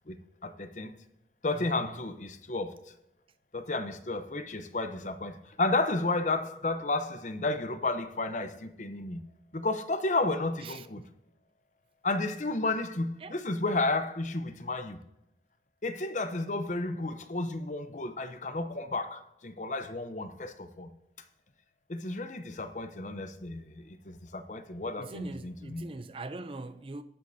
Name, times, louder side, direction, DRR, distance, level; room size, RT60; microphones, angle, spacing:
voice 1, 0.4-0.9 1.4-2.9 3.5-9.2 9.5-11.0 12.0-15.0 15.8-20.9 21.9-25.8, left 2 dB, 45° left, 0.7 m, -32 dB
voice 2, 1.6-2.0 10.6-10.9 13.2-13.3 25.0-27.0, right 2 dB, 30° right, 0.4 m, -42 dB
19.0 x 8.1 x 2.7 m
head